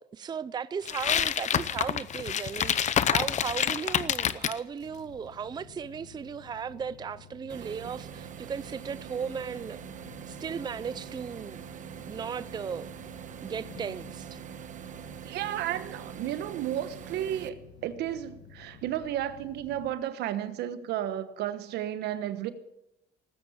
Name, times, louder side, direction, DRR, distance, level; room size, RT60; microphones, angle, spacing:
voice 1, 0.0-9.8 10.3-11.6 12.1-12.9 13.4-14.4, right 6 dB, 25° right, 0.5 m, -36 dB
sound 1, 0.9-4.6, left 9 dB, 45° left, 0.8 m, -27 dB
sound 2, 4.8-19.9, left 7 dB, 80° left, 1.5 m, -52 dB
sound 3, 7.5-17.5, right 10 dB, 50° right, 1.1 m, -44 dB
voice 2, 15.2-22.5, right 11 dB, 80° right, 1.2 m, -33 dB
19.0 x 9.4 x 7.3 m
cardioid pair, 110°, 17 cm